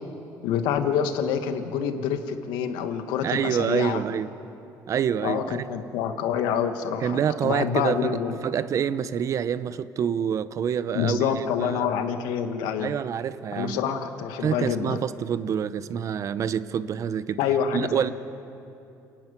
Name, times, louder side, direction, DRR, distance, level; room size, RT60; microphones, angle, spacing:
voice 1, 0.4-4.0 5.2-8.3 10.9-12.9 13.5-15.0 17.4-18.1, left 7 dB, 90° left, 8 dB, 1.4 m, -27 dB
voice 2, 3.2-4.3 4.9-5.6 7.0-11.8 12.8-13.8 14.4-17.4 17.7-18.1, right 8 dB, 45° right, 15 dB, 0.7 m, -27 dB
28.5 x 10.0 x 9.2 m, 2.8 s
cardioid pair, 120°, 7 cm